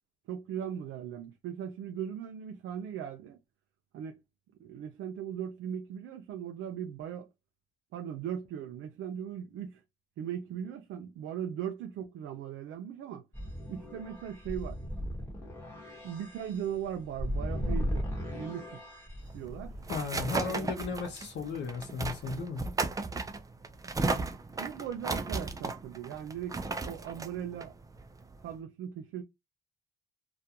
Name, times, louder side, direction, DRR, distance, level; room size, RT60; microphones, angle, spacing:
voice 1, 0.3-3.4 3.9-4.2 4.6-7.3 7.9-9.8 10.2-13.2 13.7-14.8 16.0-18.1 18.3-18.7 19.3-19.7 20.5-20.7 24.5-27.7 28.4-29.2, right 9 dB, 85° right, 0.5 m, -38 dB
sound 1, 13.3-20.0, equal, 10° left, 1.0 m, -37 dB
sound 2, 19.3-28.5, right 3 dB, 15° right, 0.4 m, -35 dB
voice 2, 19.9-22.6, left 5 dB, 65° left, 0.6 m, -35 dB
2.4 x 2.2 x 2.8 m
cardioid pair, 90°, 20 cm